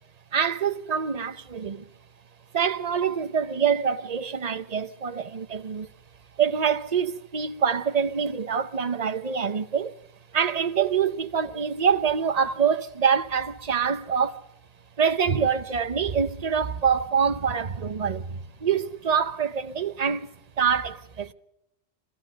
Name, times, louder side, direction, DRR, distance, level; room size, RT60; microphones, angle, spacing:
voice 1, 0.3-1.8 2.5-5.9 6.4-9.9 10.3-14.4 15.0-21.3, right 7 dB, 40° right, 0.9 m, -25 dB
26.5 x 15.0 x 6.6 m
omnidirectional pair, 1.1 m